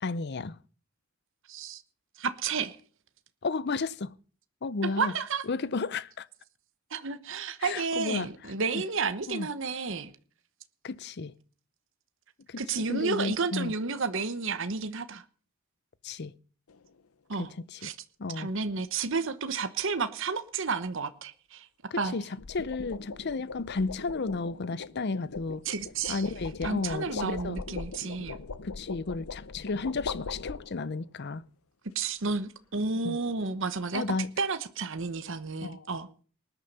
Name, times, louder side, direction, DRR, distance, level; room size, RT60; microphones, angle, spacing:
voice 1, 0.0-0.6 3.4-4.1 4.6-5.1 5.5-6.3 7.6-8.5 9.3-9.5 10.8-11.3 12.5-13.7 16.0-16.3 17.4-17.9 18.2-18.5 21.9-25.6 26.1-27.6 28.6-31.4 33.0-33.2 33.9-34.3 35.6-35.9, left 3 dB, 50° left, 0.6 m, -33 dB
voice 2, 1.5-1.8 2.2-2.7 4.8-5.4 6.9-10.1 12.6-15.2 17.3-17.5 17.8-17.9 18.3-21.7 22.0-22.1 25.7-26.2 26.6-28.4 31.9-34.0 34.4-36.1, right 4 dB, 60° right, 1.0 m, -31 dB
sound 1, 16.7-17.0 22.1-31.0, left 4 dB, 80° left, 0.8 m, -40 dB
19.5 x 9.9 x 5.4 m
head